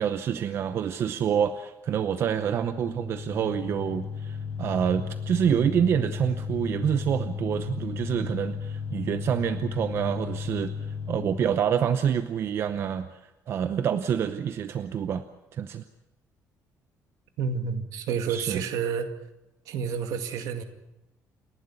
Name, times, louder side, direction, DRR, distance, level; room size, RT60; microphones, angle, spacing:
voice 1, 0.0-10.7 11.1-13.1 13.5-15.2 15.5-15.8 18.3-18.6, right 8 dB, 45° right, 11 dB, 0.8 m, -27 dB
sound 1, 2.0-11.9, left 6 dB, 30° left, 5.2 m, -35 dB
voice 2, 17.4-19.1 19.7-20.6, right 6 dB, 70° right, 8 dB, 2.1 m, -29 dB
28.5 x 12.0 x 9.7 m, 0.94 s
cardioid pair, 180°, 6 cm